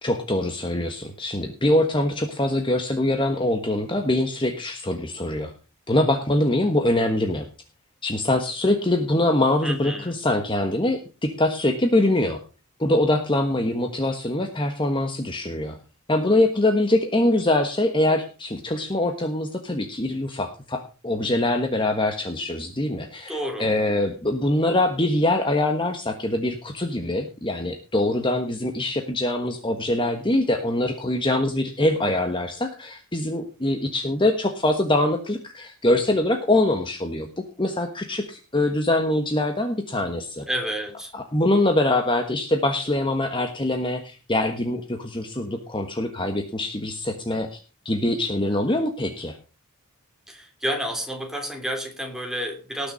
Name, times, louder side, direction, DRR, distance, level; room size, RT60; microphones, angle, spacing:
voice 1, 0.0-5.5 5.9-7.5 8.0-12.4 12.8-15.8 16.1-37.3 37.6-40.5 41.1-47.6 47.8-49.4, left 1 dB, 20° left, 5 dB, 1.3 m, -23 dB
voice 2, 9.6-10.2 23.3-23.7 40.5-41.1 50.3-52.9, equal, ahead, 2 dB, 3.1 m, -30 dB
19.0 x 6.8 x 5.5 m, 0.35 s
head